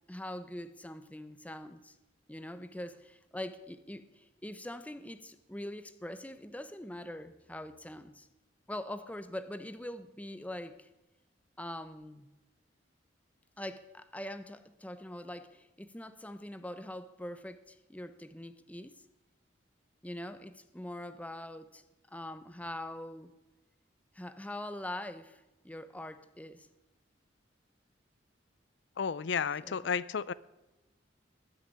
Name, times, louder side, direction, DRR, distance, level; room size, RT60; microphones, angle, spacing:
voice 1, 0.1-2.0 2.3-8.3 8.7-10.9 11.6-12.3 13.6-19.0 20.0-23.3 24.1-26.7 29.6-29.9, left 1 dB, 10° left, 12 dB, 0.8 m, -43 dB
voice 2, 29.0-30.3, left 6 dB, 70° left, 18 dB, 0.5 m, -32 dB
20.0 x 6.7 x 9.7 m, 1.0 s
head